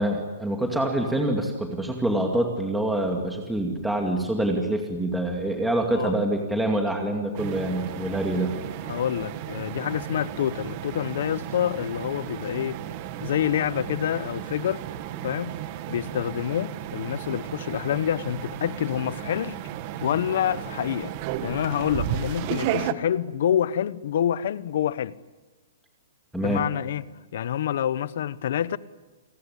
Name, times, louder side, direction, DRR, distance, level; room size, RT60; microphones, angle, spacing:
voice 1, 0.0-8.5 26.3-26.6, right 1 dB, 5° right, 2.3 m, -26 dB
sound 1, 7.3-22.9, right 11 dB, 35° right, 1.5 m, -34 dB
voice 2, 8.9-12.8 13.2-14.9 15.2-15.6 15.9-19.6 20.0-21.1 21.4-25.1 26.3-27.0 27.3-28.8, left 10 dB, 60° left, 1.0 m, -27 dB
29.0 x 19.5 x 9.9 m
hypercardioid pair, 160°, 0 cm